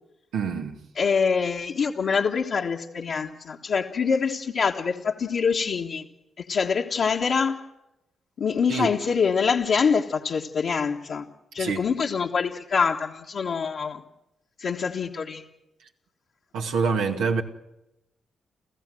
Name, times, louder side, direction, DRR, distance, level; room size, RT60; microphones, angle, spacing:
voice 1, 0.3-0.8 8.7-8.9 11.6-11.8 16.5-17.4, right 5 dB, 80° right, 1.9 m, -26 dB
voice 2, 1.0-6.1 6.4-7.6 8.4-11.3 11.5-14.0 14.6-15.4, left 5 dB, 65° left, 1.5 m, -25 dB
30.0 x 15.0 x 7.8 m
supercardioid pair, 50°, 0 cm